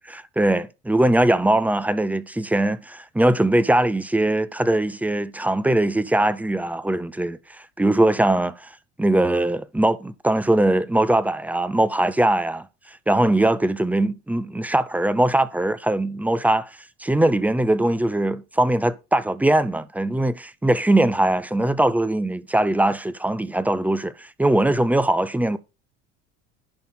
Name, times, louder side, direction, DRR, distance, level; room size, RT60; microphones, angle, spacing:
voice 1, 0.1-7.4 7.8-8.7 9.0-12.7 13.1-16.7 17.0-25.6, right 1 dB, 5° right, 0.6 m, -21 dB
10.5 x 4.1 x 5.4 m
cardioid pair, 120°, 30 cm